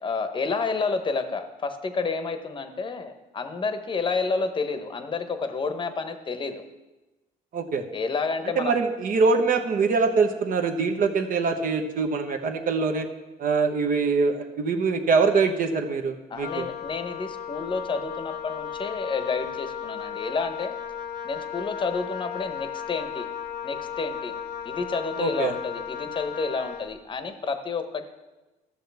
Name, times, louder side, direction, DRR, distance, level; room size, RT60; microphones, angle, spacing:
voice 1, 0.0-6.6 7.9-8.8 16.3-20.7 21.2-23.3 23.6-24.3 24.6-28.1, left 4 dB, 30° left, 8 dB, 0.9 m, -30 dB
voice 2, 7.5-7.8 8.6-13.1 13.4-16.7 25.2-25.5, right 4 dB, 55° right, 5 dB, 1.1 m, -23 dB
Wind instrument woodwind instrument, 16.4-26.9, left 8 dB, 70° left, 0.9 m, -35 dB
14.0 x 6.6 x 3.4 m, 1.1 s
cardioid pair, 110°, 17 cm